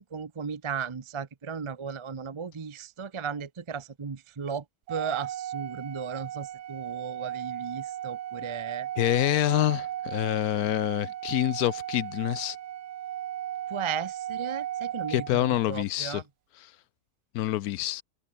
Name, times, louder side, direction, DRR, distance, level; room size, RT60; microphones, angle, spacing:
voice 1, 0.0-8.9 13.7-16.2, right 6 dB, 30° right, 0.5 m, -36 dB
Organ, 4.9-15.7, right 11 dB, 85° right, 1.4 m, -36 dB
voice 2, 9.0-12.6 15.1-16.2 17.3-18.0, left 14 dB, 75° left, 1.0 m, -26 dB
omnidirectional pair, 1.7 m